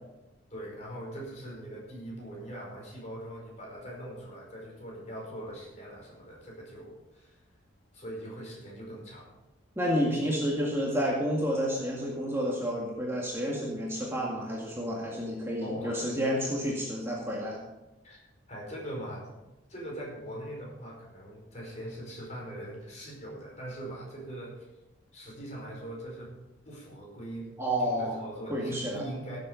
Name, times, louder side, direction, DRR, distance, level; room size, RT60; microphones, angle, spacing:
voice 1, 0.5-7.4 7.9-9.3 15.6-16.1 18.0-18.2 18.5-19.3 19.7-24.7 25.1-26.3 26.6-29.4, right 1 dB, 35° left, -2 dB, 4.9 m, -41 dB
voice 2, 9.8-17.6 27.6-28.2 28.5-29.0, equal, 10° right, -3 dB, 2.0 m, -30 dB
17.0 x 7.8 x 5.3 m, 1.0 s
head